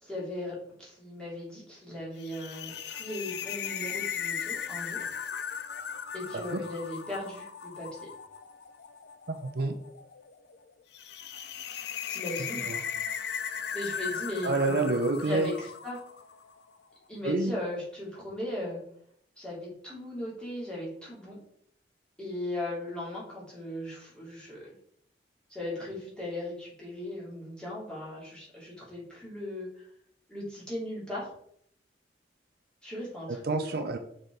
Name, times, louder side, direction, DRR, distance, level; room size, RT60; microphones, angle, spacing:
voice 1, 0.0-5.1 6.1-7.9 11.7-11.8 12.1-12.7 13.7-14.9 15.2-16.0 17.1-18.8 19.4-21.4 22.2-24.7 25.5-29.8 30.3-31.3 32.8-33.6, left 1 dB, 5° left, -7 dB, 2.9 m, -37 dB
sound 1, 2.2-16.5, left 7 dB, 65° left, 0.5 m, -37 dB
voice 2, 9.3-9.8 12.6-12.8 14.4-15.5 17.2-17.5 33.3-34.0, right 3 dB, 60° right, 7 dB, 0.6 m, -28 dB
6.5 x 5.0 x 3.9 m, 0.67 s
head